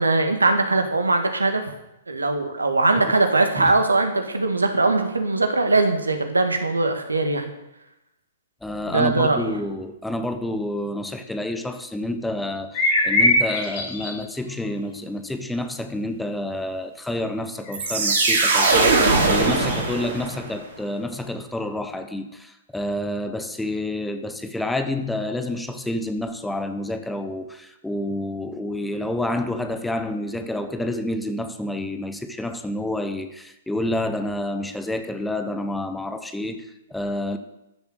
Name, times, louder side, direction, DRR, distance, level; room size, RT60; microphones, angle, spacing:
voice 1, 0.0-1.7 2.1-7.5 8.9-9.5, right 3 dB, 80° right, 2.1 m, -21 dB
voice 2, 8.6-37.4, left 1 dB, 5° left, 1.0 m, -29 dB
sound 1, 12.7-14.2 17.7-20.2, left 1 dB, 40° left, 4.6 m, -24 dB
sound 2, 17.7-20.5, right 3 dB, 55° right, 5.0 m, -20 dB
13.5 x 7.1 x 7.9 m
figure-of-eight pair, 115°, 0 cm